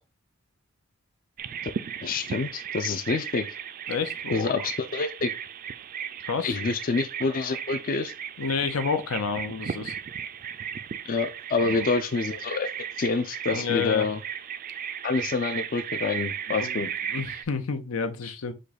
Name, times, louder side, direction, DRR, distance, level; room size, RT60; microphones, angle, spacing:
Bird vocalization bird call bird song, 1.4-17.4, right 8 dB, 40° right, 0.3 m, -36 dB
voice 1, 2.0-3.5 4.3-5.3 6.4-8.1 11.1-12.7 13.0-14.2 15.0-16.9, left 4 dB, 40° left, 0.4 m, -27 dB
voice 2, 3.9-4.5 6.2-6.6 8.4-10.0 11.6-11.8 13.5-14.1 16.5-18.5, left 5 dB, 90° left, 0.7 m, -30 dB
5.1 x 2.3 x 4.0 m
head